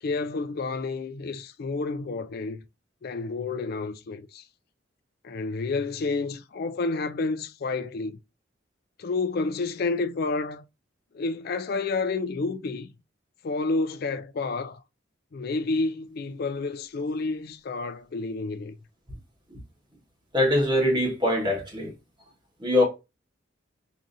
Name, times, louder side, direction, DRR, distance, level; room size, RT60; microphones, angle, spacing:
voice 1, 0.0-2.6 3.0-4.5 5.2-8.2 9.0-10.6 11.1-12.9 13.4-14.8 15.3-18.8, left 3 dB, 50° left, 0.4 m, -30 dB
voice 2, 20.3-21.9 22.6-22.9, left 1 dB, 25° right, 1.4 m, -23 dB
4.8 x 2.8 x 2.6 m
head